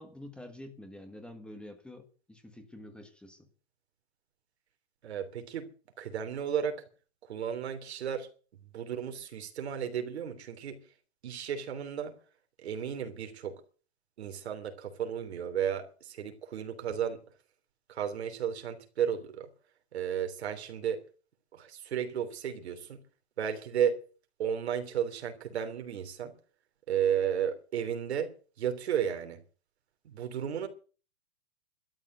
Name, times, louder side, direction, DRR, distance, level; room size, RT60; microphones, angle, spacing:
voice 1, 0.0-3.5, left 1 dB, 5° left, 1.5 m, -48 dB
voice 2, 5.0-5.7 6.0-6.8 7.3-8.3 8.7-10.8 11.2-12.1 12.6-13.6 14.2-17.2 17.9-19.5 19.9-21.0 21.5-23.0 23.4-24.0 24.4-26.3 26.9-28.3 28.6-29.4 30.0-30.7, right 8 dB, 80° right, 3.3 m, -33 dB
12.5 x 10.5 x 7.9 m
hypercardioid pair, 155°, 32 cm